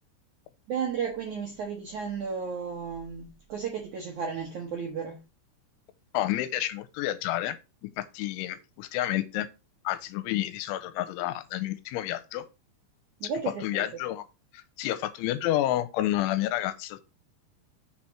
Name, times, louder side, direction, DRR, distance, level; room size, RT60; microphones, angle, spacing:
voice 1, 0.7-5.2 13.2-13.9, right 6 dB, 70° right, 1.8 m, -33 dB
voice 2, 6.1-7.6 8.0-9.5 9.8-12.5 13.6-14.2 14.5-17.0, left 14 dB, 90° left, 3.1 m, -30 dB
6.8 x 4.4 x 6.0 m
omnidirectional pair, 5.6 m